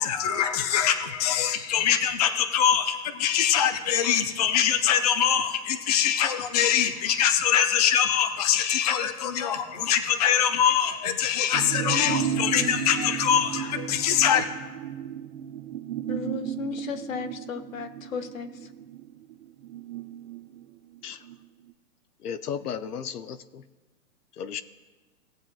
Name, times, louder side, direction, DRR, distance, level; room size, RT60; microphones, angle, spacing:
voice 1, 0.0-14.5, left 9 dB, 30° left, 7 dB, 0.4 m, -23 dB
sound 1, 11.5-21.4 21.7-21.8, right 10 dB, 45° right, 0.7 m, -34 dB
voice 2, 11.9-12.7 16.1-18.7, left 6 dB, 60° left, 10 dB, 1.1 m, -34 dB
voice 3, 22.2-23.6 24.4-24.6, left 7 dB, 80° left, 10 dB, 0.8 m, -34 dB
18.5 x 7.4 x 2.3 m, 1.3 s
hypercardioid pair, 140°, 45 cm